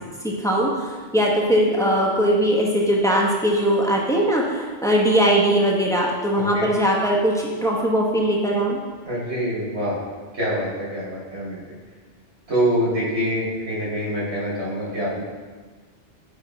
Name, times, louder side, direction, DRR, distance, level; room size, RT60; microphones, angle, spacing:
voice 1, 0.2-8.8, equal, 5° left, -3 dB, 0.8 m, -20 dB
voice 2, 6.3-6.7 9.0-10.0 10.3-11.6 12.5-15.2, equal, 75° right, -7 dB, 2.4 m, -25 dB
8.2 x 4.8 x 3.1 m, 1.4 s
omnidirectional pair, 1.2 m